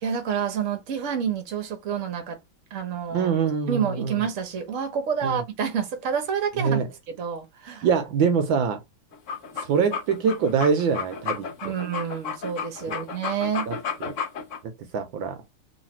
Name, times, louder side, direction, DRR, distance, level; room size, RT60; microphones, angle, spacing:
voice 1, 0.0-2.4 2.7-3.3 3.7-6.8 7.1-7.9 11.6-13.7, right 7 dB, 45° right, 1.2 m, -28 dB
voice 2, 3.1-4.2 5.2-5.4 6.6-6.9 7.8-8.8 9.6-11.7 12.9-13.0 13.7-13.8 14.0-14.1 14.9-15.4, right 6 dB, 75° right, 1.4 m, -24 dB
sound 1, 9.1-14.6, left 6 dB, 50° left, 1.0 m, -32 dB
3.2 x 3.2 x 4.2 m
omnidirectional pair, 2.3 m